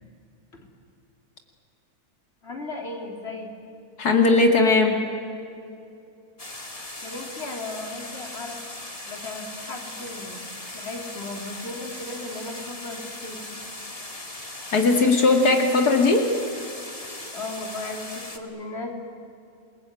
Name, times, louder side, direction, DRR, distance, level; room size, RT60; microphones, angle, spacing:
voice 1, 2.4-3.5 7.0-8.6 9.1-13.6 17.3-18.9, left 2 dB, 40° left, 1 dB, 3.9 m, -36 dB
voice 2, 4.0-5.0 14.7-16.3, left 3 dB, 85° left, 3 dB, 2.9 m, -18 dB
sound 1, 6.4-18.4, left 2 dB, 25° left, 2.2 m, -38 dB
28.5 x 22.0 x 9.2 m, 2.7 s
omnidirectional pair, 1.6 m